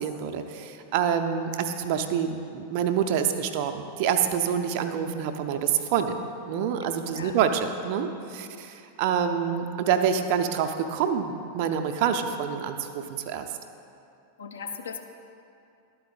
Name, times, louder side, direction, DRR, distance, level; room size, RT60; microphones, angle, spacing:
voice 1, 0.0-13.5, right 8 dB, 45° right, 7 dB, 0.5 m, -27 dB
voice 2, 14.4-15.0, left 6 dB, 65° left, 4 dB, 0.6 m, -38 dB
11.5 x 4.6 x 3.8 m, 2.6 s
figure-of-eight pair, 90°, 0 cm